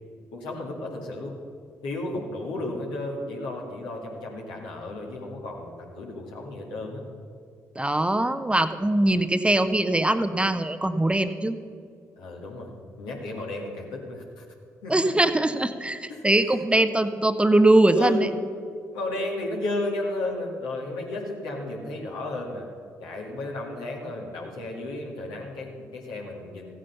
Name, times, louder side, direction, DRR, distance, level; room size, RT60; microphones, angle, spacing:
voice 1, 0.3-1.3 1.8-7.0 12.2-12.7 13.0-14.4 14.8-14.9 16.1-16.2 17.9-18.3 18.9-22.7 23.0-26.7, left 2 dB, 75° left, -1 dB, 2.0 m, -33 dB
voice 2, 7.7-11.6 14.9-18.3, right 1 dB, 15° right, 10 dB, 0.8 m, -22 dB
15.0 x 8.8 x 5.6 m, 2.3 s
hypercardioid pair, 40°, 8 cm